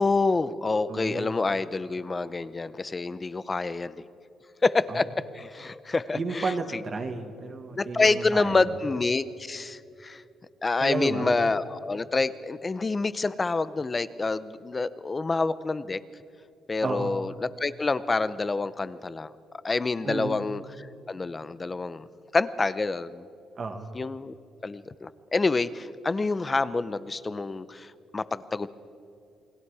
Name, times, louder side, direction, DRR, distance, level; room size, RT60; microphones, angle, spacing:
voice 1, 0.0-4.0 4.6-5.0 5.3-6.5 7.8-10.2 10.6-16.0 16.7-17.3 17.6-19.3 19.6-22.1 22.3-23.2 23.9-24.3 24.6-28.7, left 3 dB, 20° left, 15 dB, 0.7 m, -27 dB
voice 2, 0.9-1.3 4.9-5.0 6.1-8.8 10.8-11.4 16.8-17.1 20.0-20.4 23.6-23.9, right 4 dB, 35° right, 5 dB, 1.8 m, -32 dB
28.5 x 21.5 x 4.9 m, 2.6 s
cardioid pair, 130°, 0 cm